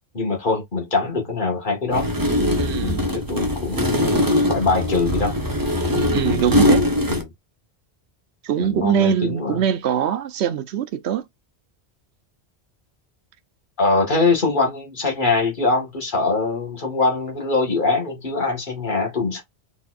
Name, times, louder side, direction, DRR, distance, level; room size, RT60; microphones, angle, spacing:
voice 1, 0.1-2.1 2.8-5.4 6.4-7.3 8.6-9.6 13.8-19.4, left 3 dB, 50° left, 1.9 m, -23 dB
sound 1, 1.9-7.2, left 1 dB, 20° right, 0.9 m, -21 dB
voice 2, 2.6-3.0 5.9-6.8 8.4-11.2, right 9 dB, 75° right, 0.9 m, -22 dB
4.2 x 4.0 x 2.5 m
omnidirectional pair, 1.1 m